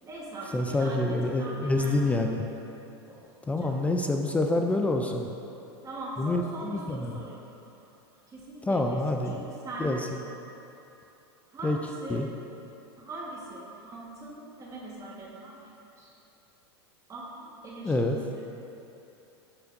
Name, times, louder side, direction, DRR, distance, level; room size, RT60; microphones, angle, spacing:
voice 1, 0.0-2.2 3.1-3.2 3.6-3.8 5.8-7.4 7.8-7.9 8.3-10.0 11.5-12.2 13.0-15.7 16.0-16.1 17.1-18.5, right 2 dB, 25° right, -5 dB, 1.4 m, -41 dB
voice 2, 0.5-2.4 3.5-5.3 6.2-7.2 8.7-9.4 9.8-10.0 11.6-11.8 12.1-12.3 17.8-18.2, left 2 dB, 10° left, 3 dB, 0.3 m, -27 dB
7.1 x 6.4 x 2.6 m, 2.9 s
hypercardioid pair, 115°, 14 cm